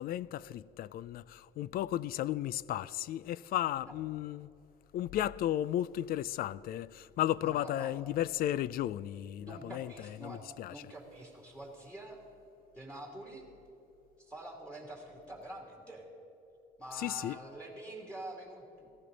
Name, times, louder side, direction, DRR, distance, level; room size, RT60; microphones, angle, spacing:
voice 1, 0.0-4.5 4.9-9.9 10.2-10.7 17.0-17.4, left 12 dB, 60° left, 0.4 m, -34 dB
voice 2, 7.4-7.9 9.4-12.2 12.7-13.5 14.2-16.1 16.8-18.9, right 1 dB, 5° left, 2.7 m, -46 dB
17.5 x 15.0 x 4.0 m
cardioid pair, 110°, 17 cm